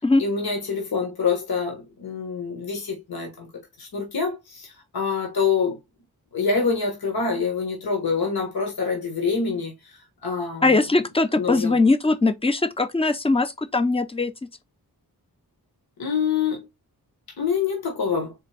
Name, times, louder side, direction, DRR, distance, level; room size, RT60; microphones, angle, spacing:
voice 1, 0.2-3.5 3.8-5.8 6.3-9.7 10.2-10.9 11.3-11.8 16.0-16.7 17.4-18.3, left 5 dB, 80° left, 1.5 m, -26 dB
voice 2, 10.6-14.3, left 3 dB, 15° left, 0.5 m, -20 dB
4.4 x 3.3 x 3.3 m
wide cardioid pair, 90°, 36 cm